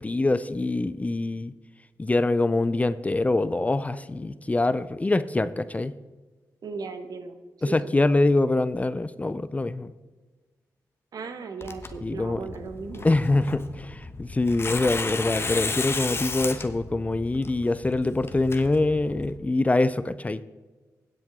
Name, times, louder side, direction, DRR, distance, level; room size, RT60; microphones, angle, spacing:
voice 1, 0.0-1.5 2.0-6.0 7.6-9.9 12.0-12.4 13.0-20.4, left 2 dB, 20° left, 15 dB, 0.5 m, -24 dB
voice 2, 6.6-7.4 7.7-7.9 11.1-13.1, right 4 dB, 70° right, 7 dB, 1.3 m, -36 dB
Tearing, 11.6-19.4, left 3 dB, 35° left, 1.1 m, -34 dB
16.5 x 7.7 x 3.6 m, 1.3 s
cardioid pair, 80°, 7 cm